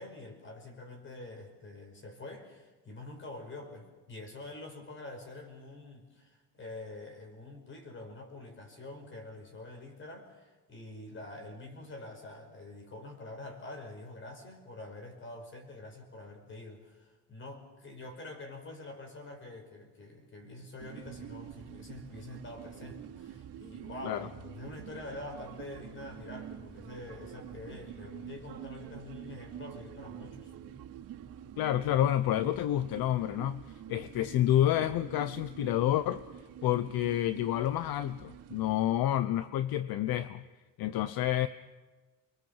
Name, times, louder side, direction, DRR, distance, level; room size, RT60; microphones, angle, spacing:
voice 1, 0.0-30.5, left 2 dB, 30° left, 4 dB, 5.5 m, -46 dB
sound 1, 20.8-38.7, right 10 dB, 60° right, 2.8 m, -47 dB
voice 2, 31.6-33.6 33.9-36.2 36.6-40.4 40.8-41.5, left 12 dB, 65° left, 12 dB, 0.8 m, -29 dB
29.0 x 23.0 x 7.3 m, 1.3 s
cardioid pair, 170°, 40 cm